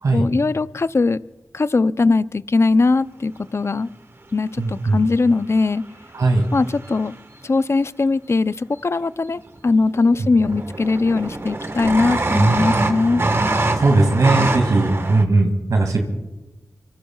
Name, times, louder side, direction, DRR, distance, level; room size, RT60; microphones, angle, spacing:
voice 1, 0.1-1.2 1.5-3.9 4.3-5.8 6.5-7.1 7.4-13.2, left 3 dB, 50° left, 14 dB, 0.5 m, -20 dB
voice 2, 4.6-5.0 6.1-6.4 10.2-10.3 13.8-16.0, right 2 dB, 80° right, 2 dB, 2.3 m, -18 dB
sound 1, 4.7-4.8 6.4-7.1 9.4-9.5 9.7-10.1 10.4-15.2, right 2 dB, 45° right, 1.4 m, -22 dB
25.5 x 23.5 x 2.4 m, 1.0 s
cardioid pair, 50°, 6 cm